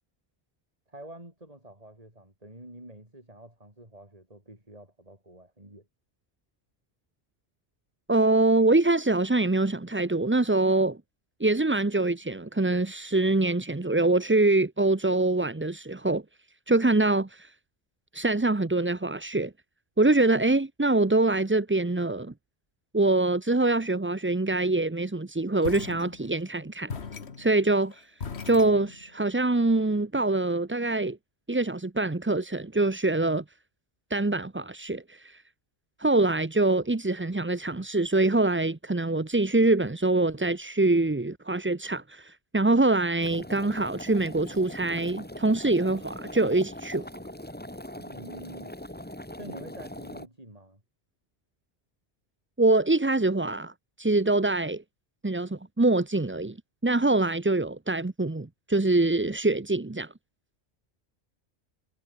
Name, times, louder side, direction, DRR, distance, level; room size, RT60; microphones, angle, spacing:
voice 1, 0.9-5.9 48.0-48.8 49.4-50.8, right 1 dB, 35° right, 6.6 m, -47 dB
voice 2, 8.1-11.0 11.4-16.2 16.7-17.5 18.1-19.5 20.0-22.3 22.9-26.9 27.4-28.1 28.4-31.2 31.5-33.4 34.1-35.4 36.0-47.0 52.6-53.7 54.0-54.8 55.2-56.6 56.8-60.1, right 2 dB, 15° right, 0.6 m, -24 dB
sound 1, 25.6-26.5 26.9-29.3, left 5 dB, 75° left, 1.8 m, -39 dB
sound 2, 43.2-50.3, left 1 dB, 10° left, 2.1 m, -41 dB
omnidirectional pair, 1.1 m